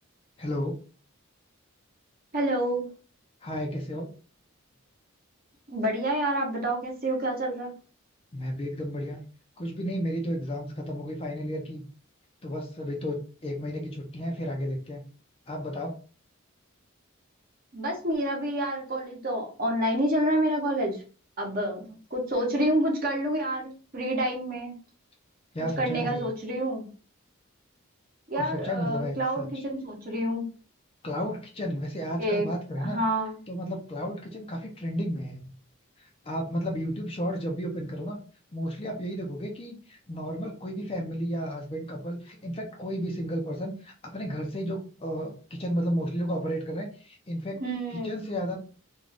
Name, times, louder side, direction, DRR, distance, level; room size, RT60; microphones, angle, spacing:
voice 1, 0.4-0.7 3.4-4.1 8.3-9.2 9.6-11.8 12.4-15.0 15.5-15.9 25.5-26.2 28.4-29.5 31.0-33.0 33.5-35.5 36.0-38.2 38.5-47.6 48.0-48.6, equal, 25° left, 1 dB, 0.5 m, -32 dB
voice 2, 2.3-2.9 5.7-7.7 17.7-21.0 21.4-24.7 25.8-26.9 28.3-30.5 32.2-32.5 32.8-33.4 47.6-48.3, right 1 dB, 40° right, -1 dB, 0.9 m, -28 dB
2.5 x 2.3 x 3.2 m, 0.38 s
head